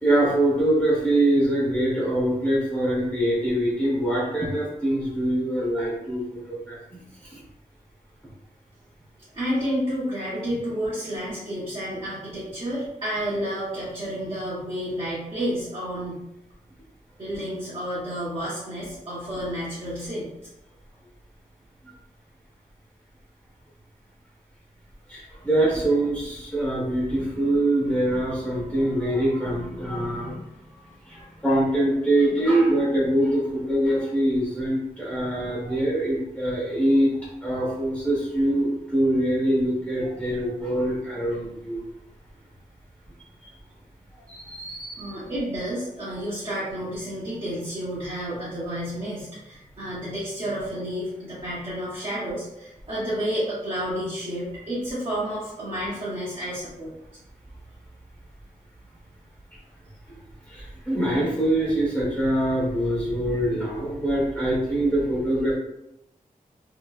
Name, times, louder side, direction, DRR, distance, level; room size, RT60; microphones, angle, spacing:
voice 1, 0.0-6.8 7.3-7.4 25.1-30.5 31.1-37.1 37.4-41.8 44.3-45.1 60.5-65.5, right 1 dB, 10° left, -6 dB, 1.0 m, -24 dB
voice 2, 9.3-16.2 17.2-20.3 45.0-56.9, equal, 40° right, -11 dB, 0.9 m, -30 dB
2.9 x 2.8 x 2.3 m, 0.87 s
wide cardioid pair, 170°, 14 cm